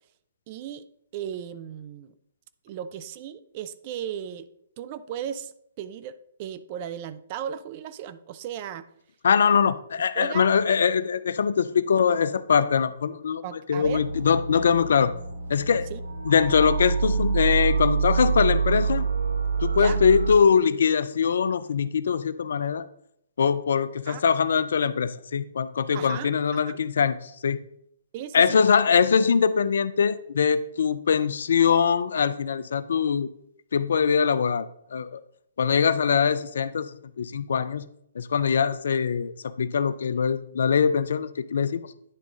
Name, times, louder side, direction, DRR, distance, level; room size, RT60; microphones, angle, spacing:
voice 1, 0.5-0.9 1.1-2.1 2.6-4.5 4.8-8.9 10.2-10.5 13.4-14.0 15.9-16.0 19.7-20.0 24.1-24.2 25.9-26.8 28.1-28.6, right 9 dB, 40° right, 14 dB, 0.4 m, -36 dB
voice 2, 9.2-13.4 13.7-15.1 15.5-15.9 16.3-19.1 19.6-22.9 23.4-27.6 28.3-33.3 33.7-35.2 35.6-36.9 37.2-37.8 38.2-41.8, left 6 dB, 65° left, 15 dB, 0.4 m, -22 dB
sound 1, 13.8-20.4, right 5 dB, 85° right, 0.8 m, -26 dB
9.8 x 3.6 x 3.6 m, 0.74 s
hypercardioid pair, 130°, 0 cm